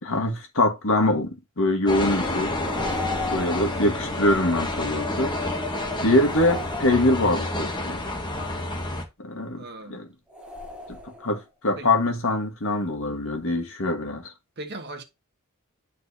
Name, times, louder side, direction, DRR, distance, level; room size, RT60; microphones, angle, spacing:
voice 1, 0.0-2.5 3.3-5.3 6.0-8.0 9.2-10.1 10.9-14.3, left 1 dB, 65° left, 1.5 m, -24 dB
sound 1, 1.9-9.0, left 2 dB, 20° left, 1.0 m, -29 dB
sound 2, 2.6-3.9 6.2-7.6 10.3-11.4, left 2 dB, 5° right, 1.0 m, -36 dB
voice 2, 3.8-4.2 9.6-10.0 11.8-11.9 14.6-15.0, right 2 dB, 50° right, 1.2 m, -39 dB
10.0 x 4.1 x 2.7 m
head